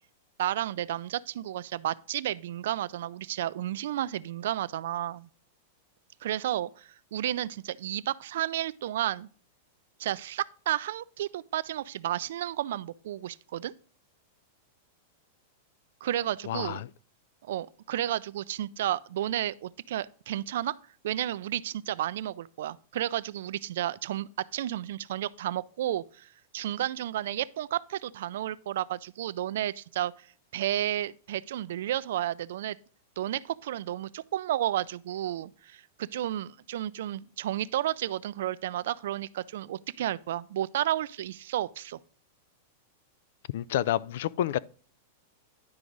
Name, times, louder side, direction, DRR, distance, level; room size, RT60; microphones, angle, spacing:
voice 1, 0.4-5.3 6.2-9.3 10.0-13.7 16.0-16.8 17.4-20.8 21.0-30.3 30.5-32.8 33.2-42.0, right 12 dB, 70° right, 0.4 m, -32 dB
voice 2, 16.5-16.9 43.5-44.6, left 12 dB, 65° left, 0.3 m, -29 dB
11.0 x 4.8 x 3.9 m
supercardioid pair, 160°, 0 cm